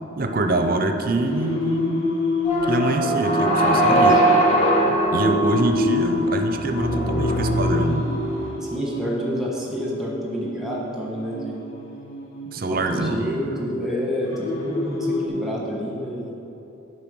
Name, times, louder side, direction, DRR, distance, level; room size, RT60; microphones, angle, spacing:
voice 1, 0.2-2.1 2.7-4.2 4.9-8.1 12.5-13.4, right 2 dB, 45° right, 6 dB, 0.6 m, -24 dB
Singing, 1.2-15.3, left 2 dB, 85° left, 1.2 m, -29 dB
sound 1, 2.4-8.5, right 1 dB, 35° left, 1.4 m, -21 dB
voice 2, 3.7-4.2 8.6-11.7 12.4-16.3, equal, ahead, -3 dB, 1.2 m, -29 dB
8.9 x 5.6 x 6.2 m, 2.9 s
head